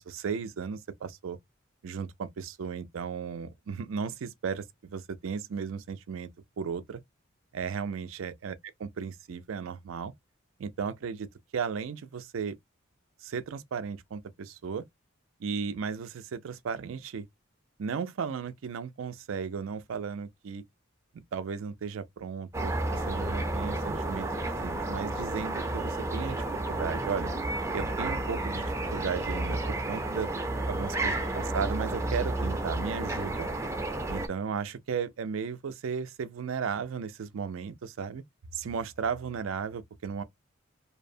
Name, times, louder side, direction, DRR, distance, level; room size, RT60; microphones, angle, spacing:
voice 1, 0.0-1.4 1.8-7.0 7.5-10.1 10.6-11.3 11.5-12.6 13.2-14.8 15.4-17.2 17.8-20.6 21.3-24.3 24.6-27.3 27.7-28.6 28.9-30.3 30.7-33.5 34.1-38.2 38.5-40.2, right 6 dB, 85° right, 0.4 m, -35 dB
sound 1, 22.5-34.3, right 2 dB, 15° right, 0.4 m, -31 dB
2.7 x 2.0 x 2.6 m
head